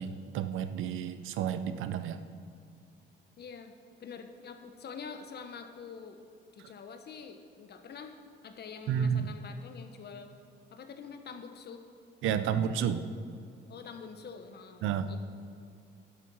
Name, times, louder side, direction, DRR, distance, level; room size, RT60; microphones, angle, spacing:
voice 1, 0.0-2.2 8.9-9.4 12.2-13.0 14.8-15.1, right 8 dB, 85° right, 11 dB, 0.6 m, -31 dB
voice 2, 3.4-6.2 6.5-8.1 8.4-10.3 10.7-11.8 13.7-15.2, left 5 dB, 55° left, 6 dB, 1.0 m, -46 dB
10.5 x 7.0 x 6.2 m, 2.3 s
cardioid pair, 90°, 20 cm